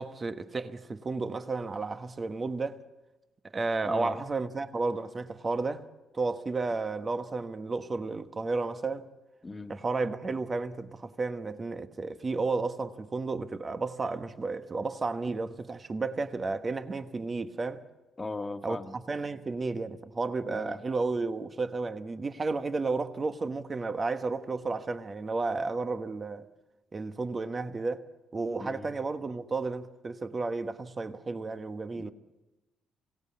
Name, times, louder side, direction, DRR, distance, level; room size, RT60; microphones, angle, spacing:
voice 1, 0.0-2.8 3.5-5.8 6.1-9.1 9.7-17.8 18.6-26.5 26.9-28.0 28.3-32.1, right 3 dB, 30° right, 1.2 m, -32 dB
voice 2, 3.8-4.3 9.4-9.8 18.2-18.9 20.4-20.8 28.6-29.0 31.9-32.1, left 2 dB, 20° left, 1.5 m, -39 dB
24.5 x 17.0 x 8.5 m
cardioid pair, 90°, 0 cm